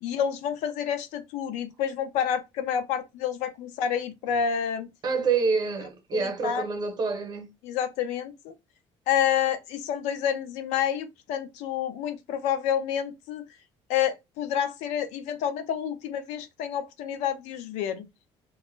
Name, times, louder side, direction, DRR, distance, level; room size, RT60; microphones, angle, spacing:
voice 1, 0.0-4.9 6.1-6.6 7.6-8.5 9.1-13.4 13.9-18.1, left 9 dB, 90° left, 0.5 m, -29 dB
voice 2, 5.0-7.5, right 5 dB, 40° right, 0.7 m, -27 dB
2.2 x 2.0 x 3.0 m
cardioid pair, 110°, 12 cm